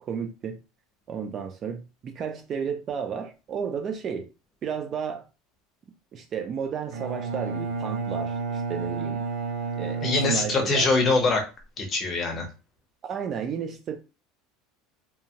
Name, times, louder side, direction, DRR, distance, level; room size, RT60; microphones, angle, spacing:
voice 1, 0.1-0.6 1.1-4.3 4.6-5.2 6.1-9.3 9.8-10.9 13.0-14.0, right 7 dB, 30° right, 0.4 m, -33 dB
Bowed string instrument, 6.9-11.1, right 4 dB, 80° right, 1.1 m, -31 dB
voice 2, 10.0-11.4 11.8-12.5, left 3 dB, 25° left, 0.8 m, -23 dB
2.8 x 2.3 x 2.8 m
cardioid pair, 160°, 0 cm